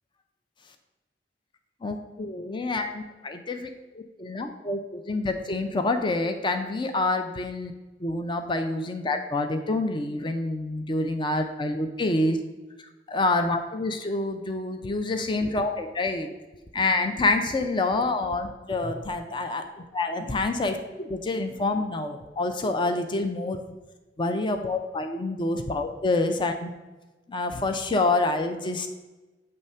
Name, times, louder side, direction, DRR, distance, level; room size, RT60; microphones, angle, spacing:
voice 1, 1.8-3.7 3.9-7.7 8.0-12.4 12.8-16.3 16.7-23.6 24.2-26.7 27.3-28.9, left 2 dB, 25° left, 6 dB, 0.4 m, -27 dB
7.6 x 3.2 x 5.4 m, 1.1 s
head